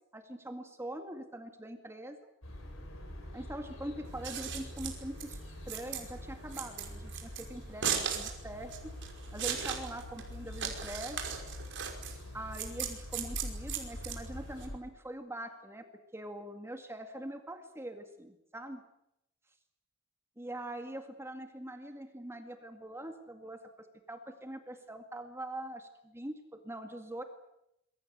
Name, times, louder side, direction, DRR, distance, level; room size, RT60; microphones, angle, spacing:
voice 1, 0.1-2.2 3.3-5.4 5.7-8.9 9.3-11.2 12.3-15.9 16.1-18.8 20.4-27.2, right 1 dB, 15° right, 6 dB, 2.1 m, -43 dB
sound 1, 2.4-14.8, left 1 dB, 80° left, 7.6 m, -45 dB
Scissors, 4.1-14.7, right 8 dB, 60° right, 5.4 m, -38 dB
27.0 x 22.5 x 8.0 m, 0.83 s
head